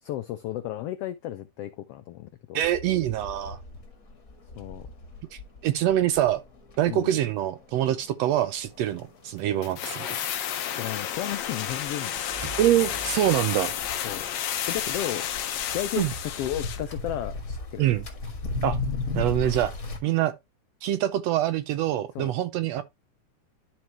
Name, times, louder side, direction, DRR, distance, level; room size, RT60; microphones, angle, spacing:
voice 1, 0.0-2.6 4.6-4.9 6.9-7.1 10.7-12.2 14.0-14.2 14.7-17.8 22.1-22.3, left 13 dB, 85° left, 1.3 m, -34 dB
voice 2, 2.5-3.6 5.3-6.4 6.8-10.2 12.6-13.7 16.0-16.1 17.8-18.0 18.6-18.8 19.1-19.7 20.0-20.3 20.8-22.8, right 12 dB, 75° right, 1.6 m, -25 dB
sound 1, 2.6-20.0, left 3 dB, 35° left, 1.9 m, -38 dB
sound 2, 9.6-16.9 17.2-17.3, left 10 dB, 65° left, 2.0 m, -31 dB
sound 3, 11.8-15.2, right 5 dB, 30° right, 0.5 m, -44 dB
12.0 x 4.5 x 3.0 m
omnidirectional pair, 3.4 m